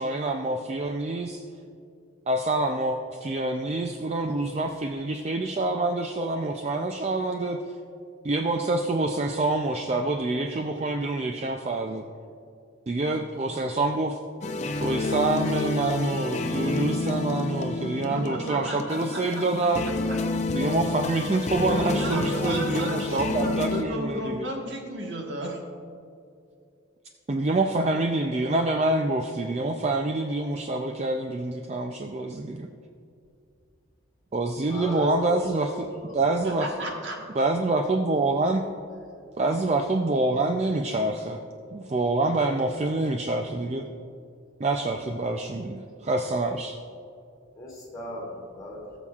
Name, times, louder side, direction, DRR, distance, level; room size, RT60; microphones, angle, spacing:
voice 1, 0.0-1.4 2.3-7.6 8.2-12.0 12.9-14.2 14.8-19.9 20.5-24.5 27.3-32.7 34.3-35.9 36.1-36.7 37.4-38.6 39.4-41.4 41.7-43.9 44.6-46.8, right 2 dB, 30° right, 4 dB, 0.4 m, -26 dB
sound 1, 14.4-23.8, left 3 dB, 35° left, 0.5 m, -29 dB
voice 2, 18.1-19.4 21.7-25.6 36.4-37.2, right 1 dB, 60° right, 0 dB, 1.4 m, -33 dB
voice 3, 34.7-36.4 47.5-49.0, left 2 dB, 15° left, -4 dB, 2.4 m, -37 dB
18.0 x 7.2 x 2.4 m, 2.4 s
head